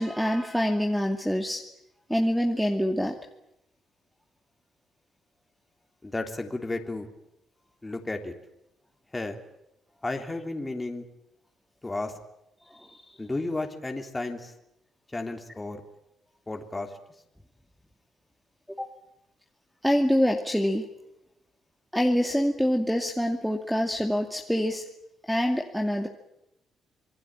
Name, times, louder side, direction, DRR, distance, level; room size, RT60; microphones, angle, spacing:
voice 1, 0.0-1.6 2.1-3.1 12.7-13.1 18.7-18.9 19.8-20.9 21.9-24.8 25.3-26.1, equal, ahead, 1 dB, 2.5 m, -25 dB
voice 2, 6.0-7.1 7.8-8.3 9.1-9.4 10.0-11.0 11.8-12.1 13.2-14.5 15.1-15.8 16.5-16.9, left 2 dB, 15° left, 3 dB, 3.4 m, -33 dB
27.0 x 20.5 x 9.1 m, 0.86 s
cardioid pair, 90°, 0 cm